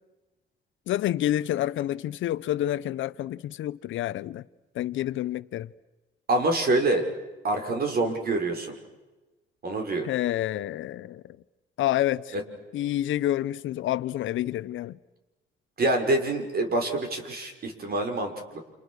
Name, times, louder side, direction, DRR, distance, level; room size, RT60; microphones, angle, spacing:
voice 1, 0.9-4.4 4.7-5.7 10.0-11.4 11.8-12.4 12.7-15.0, left 13 dB, 80° left, 0.8 m, -28 dB
voice 2, 6.3-7.1 7.4-8.7 9.6-10.1 12.3-12.4 15.8-18.6, right 2 dB, 50° right, 5.8 m, -26 dB
30.0 x 27.5 x 6.5 m
cardioid pair, 90°, 20 cm